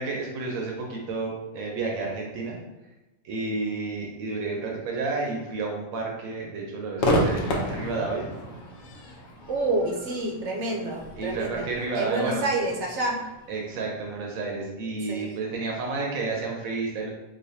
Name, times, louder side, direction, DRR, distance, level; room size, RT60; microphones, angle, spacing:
voice 1, 0.0-2.6 3.2-8.3 11.2-12.4 13.5-17.1, right 3 dB, 85° right, -1 dB, 1.1 m, -31 dB
Crowd / Fireworks, 7.0-14.3, equal, 80° left, 1.1 m, -31 dB
voice 2, 9.5-11.7 11.9-13.2 15.1-15.2, right 2 dB, 65° right, -1 dB, 0.9 m, -28 dB
4.1 x 2.6 x 2.7 m, 1.0 s
omnidirectional pair, 1.4 m